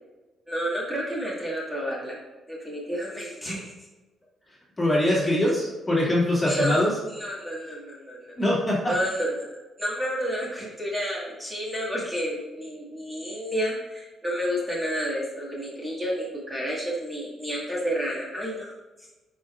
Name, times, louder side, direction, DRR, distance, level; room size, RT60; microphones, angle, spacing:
voice 1, 0.5-2.2 2.5-3.7 5.0-5.2 6.5-8.3 8.9-9.4 9.8-18.7, equal, 15° right, -6 dB, 2.2 m, -30 dB
voice 2, 4.8-6.9 8.4-8.9, left 1 dB, 15° left, -6 dB, 2.3 m, -23 dB
10.0 x 4.9 x 2.5 m, 1.2 s
cardioid pair, 90°, 0 cm